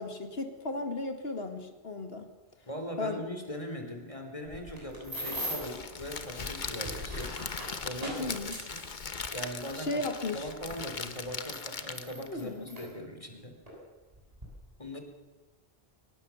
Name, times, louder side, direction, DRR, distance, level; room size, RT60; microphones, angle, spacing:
voice 1, 0.0-2.3 3.0-3.3 8.2-8.6 9.7-10.5 12.3-12.8 14.9-15.0, left 2 dB, 70° left, 6 dB, 2.3 m, -35 dB
voice 2, 2.7-7.4 7.8-8.4 8.7-8.8 9.3-10.0 10.3-13.6 14.8-15.0, equal, 30° left, 5 dB, 3.3 m, -40 dB
sound 1, 4.4-5.8 6.5-9.9 10.7-10.8 11.4-12.9 13.7-13.8 14.1-14.5, equal, 35° right, 7.5 m, -40 dB
Crackle, 5.6-12.3, left 5 dB, 50° left, 1.2 m, -39 dB
23.5 x 18.5 x 7.1 m, 1.2 s
omnidirectional pair, 1.1 m